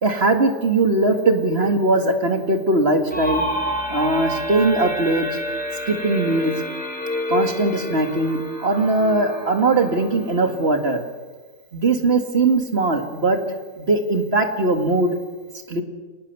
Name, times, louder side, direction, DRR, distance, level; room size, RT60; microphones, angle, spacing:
voice 1, 0.0-3.4 3.9-5.3 5.9-6.5 7.3-11.0 11.7-13.4 13.8-15.2 15.7-15.8, right 2 dB, 45° right, 5 dB, 2.4 m, -20 dB
sound 1, 3.1-10.7, left 1 dB, 5° left, 6.9 m, -28 dB
26.0 x 19.5 x 7.0 m, 1.4 s
omnidirectional pair, 1.4 m